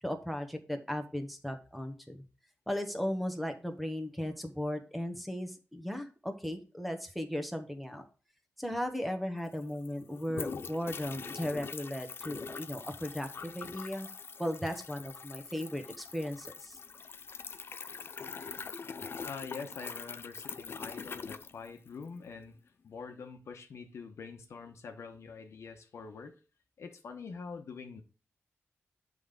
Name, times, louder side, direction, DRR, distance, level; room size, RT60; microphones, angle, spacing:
voice 1, 0.0-2.2 2.7-8.0 8.6-14.1 14.4-16.8, equal, ahead, 1.2 m, -36 dB
sound 1, 9.1-9.2 9.4-22.2, left 5 dB, 55° left, 0.4 m, -43 dB
voice 2, 19.2-22.5 22.8-26.4 26.8-28.0, left 5 dB, 80° left, 1.1 m, -45 dB
7.6 x 3.8 x 5.1 m
cardioid pair, 80°, 5 cm